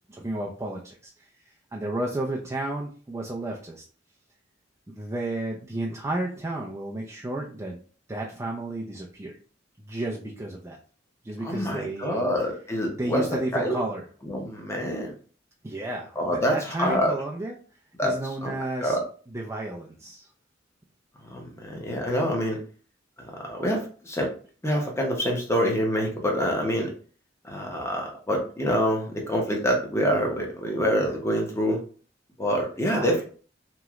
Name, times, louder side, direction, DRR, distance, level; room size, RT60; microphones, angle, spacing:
voice 1, 0.1-1.0 1.7-3.8 4.9-7.8 8.1-9.3 9.9-10.8 11.2-12.2 12.9-14.1 15.6-17.5 18.0-19.0 19.3-20.3 33.0-33.2, right 1 dB, 15° right, -1 dB, 0.4 m, -32 dB
voice 2, 11.4-13.3 13.5-13.8 14.3-15.1 16.2-17.1 18.0-18.1 18.4-18.6 18.8-19.0 21.3-22.6 23.4-24.3 24.6-26.9 27.4-31.8 32.4-33.2, equal, 15° left, 0 dB, 0.7 m, -26 dB
3.0 x 3.0 x 2.3 m, 0.41 s
head